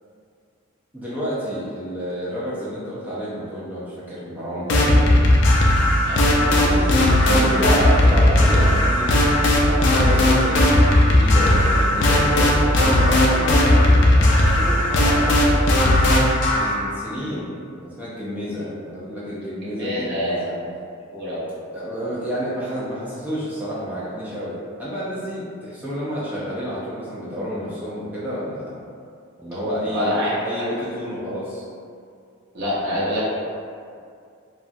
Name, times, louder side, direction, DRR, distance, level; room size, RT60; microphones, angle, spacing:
voice 1, 0.9-5.2 6.4-9.2 9.5-13.9 14.1-15.4 16.5-17.6 18.0-20.6 21.7-28.8 29.4-31.6, equal, 10° right, -10 dB, 0.4 m, -29 dB
sound 1, 4.7-16.8, left 1 dB, 60° left, 0.4 m, -16 dB
voice 2, 19.6-20.4 21.1-21.4 29.9-30.3 32.5-33.2, left 1 dB, 55° right, -9 dB, 0.7 m, -25 dB
2.9 x 2.3 x 2.5 m, 2.3 s
head